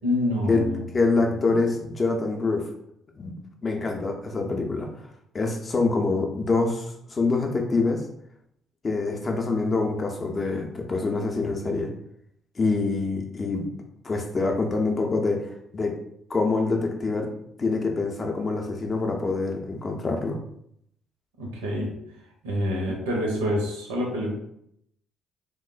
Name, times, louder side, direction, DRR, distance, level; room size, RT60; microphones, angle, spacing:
voice 1, 0.0-0.9 1.2-1.4 21.4-22.0 22.4-24.3, left 1 dB, 75° right, 0 dB, 0.5 m, -27 dB
voice 2, 0.9-2.6 3.2-3.3 3.6-4.9 5.3-8.0 8.8-11.9 12.6-13.7 14.0-15.4 15.7-15.9 16.3-17.3 17.6-20.4, left 3 dB, 35° left, 2 dB, 0.5 m, -25 dB
3.1 x 2.0 x 2.4 m, 0.73 s
figure-of-eight pair, 45°, 0 cm